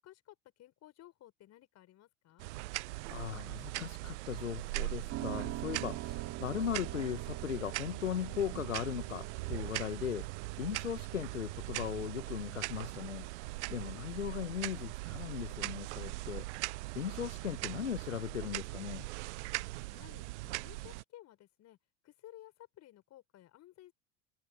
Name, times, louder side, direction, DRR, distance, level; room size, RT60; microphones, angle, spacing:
voice 1, 0.0-2.5 19.9-21.8 22.0-23.9, left 14 dB, 45° left, 6.1 m, -56 dB
sound 1, 2.4-21.0, right 22 dB, 65° right, 0.5 m, -41 dB
voice 2, 3.1-10.3 10.6-13.3 13.7-19.1, left 9 dB, 90° left, 1.3 m, -38 dB
Piano, 5.1-15.2, right 15 dB, 45° right, 2.7 m, -46 dB
hypercardioid pair, 80°, 37 cm